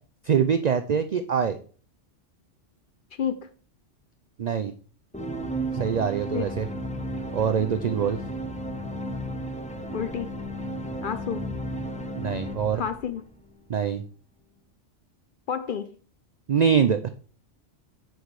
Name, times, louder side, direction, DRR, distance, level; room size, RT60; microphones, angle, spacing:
voice 1, 0.2-1.6 4.4-4.7 5.7-6.7 7.3-8.2 12.2-12.8 13.7-14.0 16.5-17.1, right 7 dB, 70° right, 10 dB, 0.4 m, -24 dB
voice 2, 3.1-3.5 6.3-6.5 9.9-10.3 11.0-11.5 12.7-13.2 15.5-16.0, left 8 dB, 60° left, 11 dB, 0.6 m, -30 dB
sound 1, 5.1-13.6, right 1 dB, 10° left, 0.6 m, -34 dB
6.2 x 5.2 x 4.7 m, 0.41 s
omnidirectional pair, 1.3 m